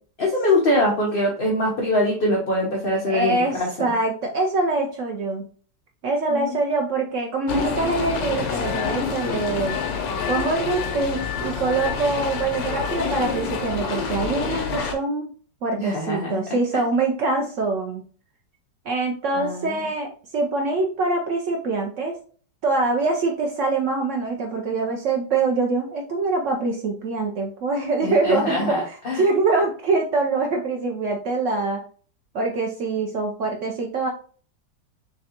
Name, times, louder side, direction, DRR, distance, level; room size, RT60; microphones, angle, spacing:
voice 1, 0.2-3.9 6.3-6.6 15.8-16.4 16.7-16.8 19.3-19.7 28.0-29.2, left 1 dB, 55° left, -2 dB, 0.6 m, -23 dB
voice 2, 3.1-5.5 6.0-9.8 10.3-15.3 15.6-18.0 18.8-22.1 22.6-31.8 32.3-34.1, right 3 dB, 90° right, 2 dB, 0.6 m, -24 dB
sound 1, 7.5-14.9, left 6 dB, 85° left, 1.4 m, -27 dB
3.6 x 3.3 x 2.8 m, 0.43 s
omnidirectional pair, 2.0 m